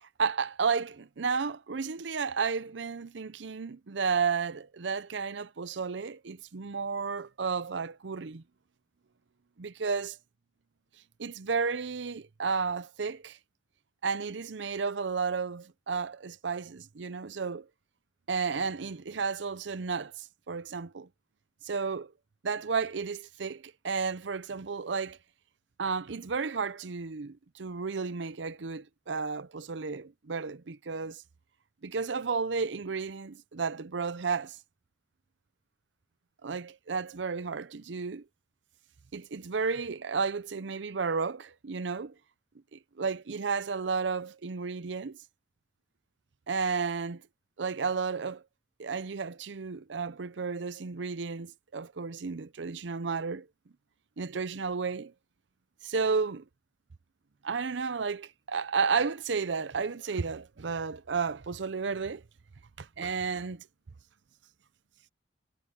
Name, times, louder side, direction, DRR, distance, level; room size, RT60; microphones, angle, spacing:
voice 1, 0.0-8.4 9.6-10.2 11.2-13.4 14.0-17.7 18.3-21.1 21.6-22.1 22.4-25.2 25.8-31.2 31.8-34.6 36.4-38.2 39.1-42.1 42.7-45.2 46.5-47.2 47.6-48.4 48.8-53.5 54.2-55.1 55.8-56.4 57.4-62.2 62.8-63.7, right 5 dB, 80° right, 0.6 m, -32 dB
head